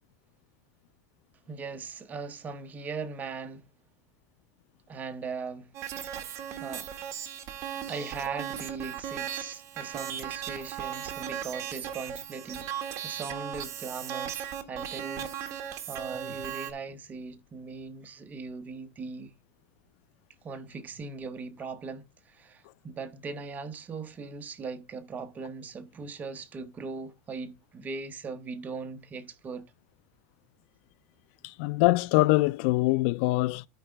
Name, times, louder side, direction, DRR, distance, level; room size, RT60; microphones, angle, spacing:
voice 1, 1.5-3.6 4.9-5.7 6.2-6.9 7.9-19.3 20.4-29.7, right 4 dB, 20° right, 0.9 m, -39 dB
sound 1, 5.7-16.7, right 9 dB, 40° right, 1.5 m, -37 dB
voice 2, 31.4-33.7, left 19 dB, 60° left, 0.4 m, -24 dB
13.5 x 4.8 x 3.3 m
supercardioid pair, 150°, 8 cm